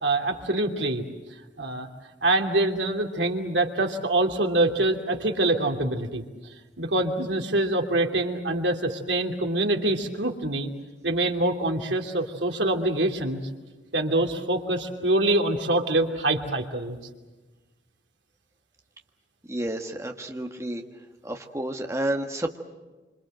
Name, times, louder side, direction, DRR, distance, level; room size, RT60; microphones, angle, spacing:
voice 1, 0.0-1.0 1.6-1.9 2.2-6.2 6.8-10.7 11.0-13.4 13.9-17.0, right 2 dB, 75° right, 3 dB, 2.7 m, -25 dB
voice 2, 19.5-20.8 21.2-22.6, right 1 dB, 15° right, 4 dB, 1.6 m, -30 dB
26.5 x 26.5 x 7.8 m, 1.2 s
head